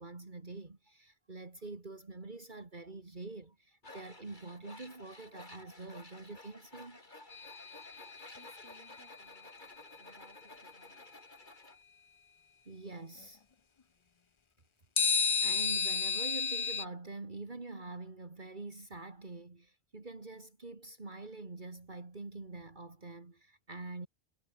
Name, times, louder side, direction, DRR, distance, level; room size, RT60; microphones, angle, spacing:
voice 1, 0.0-7.0 12.7-13.4 15.4-24.1, right 3 dB, 50° right, 2.5 m, -45 dB
Tools, 3.8-11.8, left 2 dB, 50° left, 3.9 m, -54 dB
sound 1, 7.3-8.6 15.0-16.8, left 6 dB, 35° left, 0.6 m, -32 dB
voice 2, 7.8-9.7 10.0-11.2, right 1 dB, 75° right, 7.4 m, -63 dB
omnidirectional pair, 1.0 m